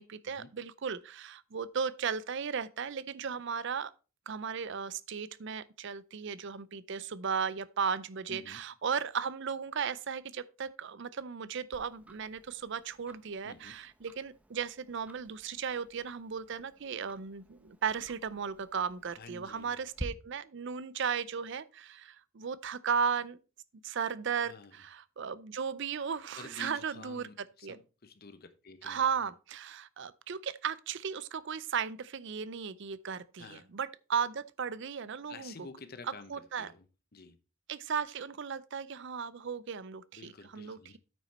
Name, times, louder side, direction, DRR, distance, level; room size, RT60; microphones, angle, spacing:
voice 1, 0.0-3.9 4.3-23.4 23.8-27.8 28.8-35.7 36.3-36.7 37.7-41.0, right 6 dB, 55° right, 0.5 m, -36 dB
voice 2, 8.3-8.6 13.4-13.7 19.2-19.8 24.4-24.7 26.3-29.0 33.4-33.7 35.3-36.9 37.1-37.4 40.1-41.0, left 4 dB, 45° left, 0.9 m, -50 dB
Tick-tock, 11.7-20.0, equal, 5° right, 0.9 m, -51 dB
9.0 x 6.0 x 4.2 m
head